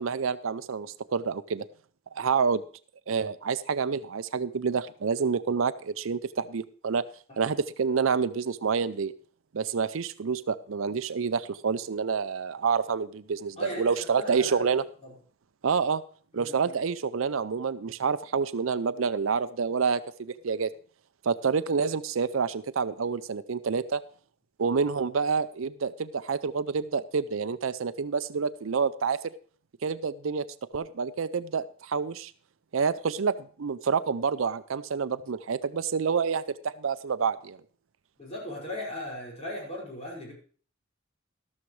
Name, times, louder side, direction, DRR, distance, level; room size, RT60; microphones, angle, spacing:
voice 1, 0.0-1.7 2.1-2.6 3.1-7.0 7.4-9.1 9.5-14.8 15.6-16.0 16.3-20.7 21.2-24.0 24.6-29.2 29.8-30.5 30.7-32.3 32.7-37.6, right 5 dB, 70° right, 14 dB, 0.5 m, -28 dB
voice 2, 13.6-14.6 15.0-15.1 16.3-16.7 38.2-40.3, left 1 dB, 35° left, -3 dB, 5.5 m, -38 dB
13.0 x 13.0 x 3.2 m, 0.43 s
head